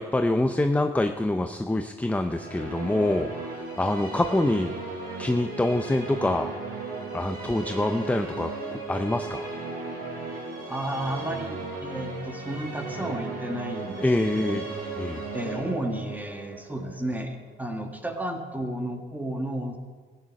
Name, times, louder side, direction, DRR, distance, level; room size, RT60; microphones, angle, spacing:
voice 1, 0.0-4.8 5.2-6.5 7.1-9.5 14.0-14.6 15.0-15.2, left 1 dB, 5° left, 6 dB, 0.6 m, -25 dB
sound 1, 2.1-18.1, right 3 dB, 50° right, 4.1 m, -36 dB
voice 2, 10.7-14.6 15.3-19.8, right 1 dB, 10° right, 3 dB, 1.9 m, -32 dB
15.5 x 9.0 x 5.3 m, 1.5 s
cardioid pair, 90°, 20 cm